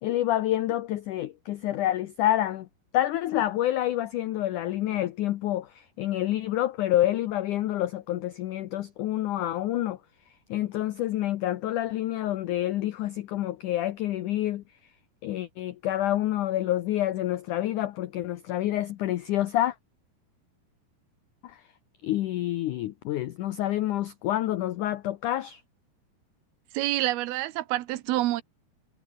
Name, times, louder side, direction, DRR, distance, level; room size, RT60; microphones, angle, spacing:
voice 1, 0.0-2.7 2.9-10.0 10.5-14.6 15.2-19.8 21.4-21.6 22.0-25.6, left 13 dB, 75° left, 1.9 m, -28 dB
voice 2, 26.7-28.4, right 16 dB, 75° right, 2.8 m, -27 dB
omnidirectional pair, 4.7 m